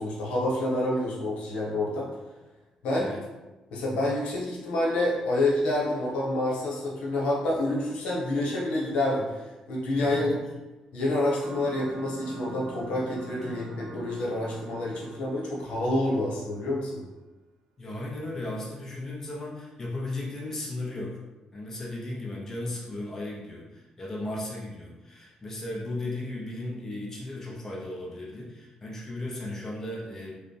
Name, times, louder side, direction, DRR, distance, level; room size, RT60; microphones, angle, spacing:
voice 1, 0.0-2.1 2.8-3.1 3.7-10.3 10.9-17.0, left 1 dB, 75° left, -4 dB, 1.0 m, -28 dB
voice 2, 10.0-10.4 13.4-13.6 17.8-21.2 21.5-30.4, left 2 dB, 20° left, -5 dB, 0.7 m, -36 dB
sound 1, 11.4-16.7, right 4 dB, 80° right, 0.4 m, -45 dB
4.7 x 2.2 x 3.2 m, 1.1 s
cardioid pair, 145°, 2 cm